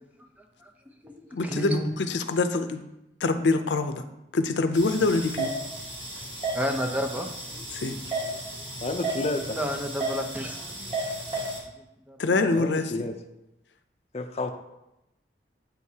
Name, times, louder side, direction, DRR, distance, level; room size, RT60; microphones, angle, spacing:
voice 1, 0.4-0.7 1.0-1.9 6.5-7.9 8.6-8.7 9.4-10.6 11.8-12.2, equal, 10° right, 4 dB, 0.6 m, -32 dB
voice 2, 1.3-2.8 3.2-4.0 4.3-5.5 7.7-8.0 12.2-13.1, left 3 dB, 80° left, 8 dB, 0.6 m, -25 dB
sound 1, 4.8-11.6, right 2 dB, 30° right, 1.7 m, -34 dB
voice 3, 8.8-9.6 12.6-13.1 14.1-14.5, left 2 dB, 35° left, 7 dB, 0.6 m, -30 dB
8.2 x 6.4 x 2.8 m, 0.90 s
head